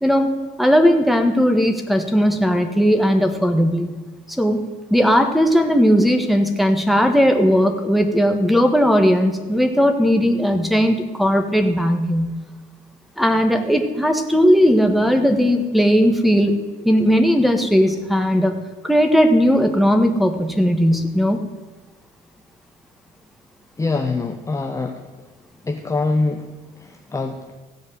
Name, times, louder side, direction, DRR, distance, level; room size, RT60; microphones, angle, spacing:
voice 1, 0.6-3.9 4.4-4.6 4.9-12.3 13.2-16.6 16.8-18.5 18.8-21.4, equal, ahead, 6 dB, 1.5 m, -17 dB
voice 2, 23.8-25.1 25.6-27.6, left 3 dB, 20° left, 4 dB, 0.9 m, -24 dB
15.5 x 5.3 x 8.2 m, 1.3 s
cardioid pair, 110°, 17 cm